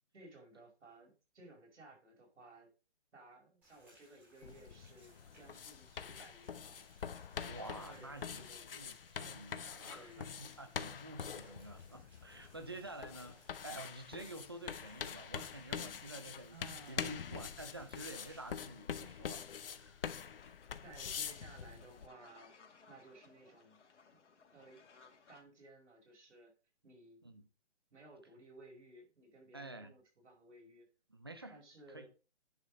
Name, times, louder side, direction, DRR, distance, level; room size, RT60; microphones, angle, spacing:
voice 1, 0.1-2.7 3.1-6.9 7.5-8.7 9.2-9.7 9.9-10.3 16.5-17.4 20.8-22.6 22.9-23.8 24.1-24.2 24.5-24.8 25.3-26.5 26.8-27.2 27.9-30.9 31.5-32.1, right 2 dB, 80° right, 5.4 m, -58 dB
Rain, 3.6-18.7, equal, 5° right, 2.1 m, -68 dB
sound 1, 4.4-22.1, left 7 dB, 55° left, 0.8 m, -45 dB
voice 2, 7.4-19.4 19.7-20.3 27.2-27.4 29.5-29.9 31.1-31.6 31.9-32.1, right 1 dB, 20° right, 0.5 m, -49 dB
sound 2, 20.2-25.4, left 5 dB, 85° left, 2.2 m, -63 dB
10.0 x 5.4 x 5.1 m
hypercardioid pair, 175°, 35 cm